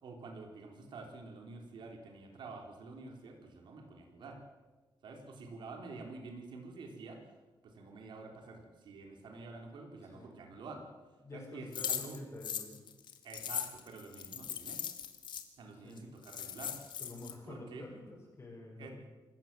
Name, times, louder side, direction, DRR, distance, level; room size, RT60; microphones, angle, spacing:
voice 1, 0.0-4.4 5.0-7.3 7.6-10.9 11.3-12.2 13.2-14.9 15.6-16.9 17.4-17.9 18.8-18.9, right 3 dB, 70° right, 3 dB, 3.7 m, -48 dB
voice 2, 10.0-10.5 11.2-12.8 15.7-16.2 17.0-18.9, left 2 dB, 30° left, -6 dB, 5.9 m, -49 dB
sound 1, 11.7-15.4 16.0-16.1 16.2-17.3, left 8 dB, 70° left, 2.0 m, -39 dB
26.5 x 15.0 x 7.5 m, 1.2 s
wide cardioid pair, 155°, 8 cm